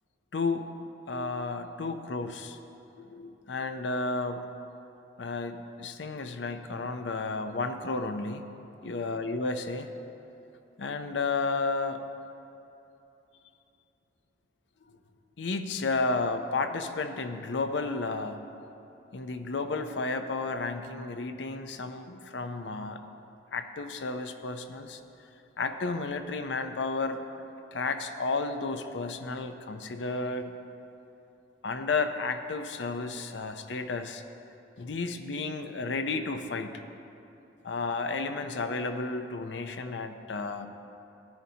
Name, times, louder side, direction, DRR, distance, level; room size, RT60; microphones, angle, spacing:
voice 1, 0.3-0.7 1.1-2.6 3.0-4.4 5.2-8.4 8.8-9.9 10.8-12.1 15.4-18.4 19.1-23.0 23.5-25.0 25.6-27.2 27.7-30.5 31.6-34.2 34.8-36.8 37.6-40.7, left 3 dB, 65° left, 8 dB, 0.6 m, -32 dB
14.5 x 10.5 x 2.8 m, 2.9 s
head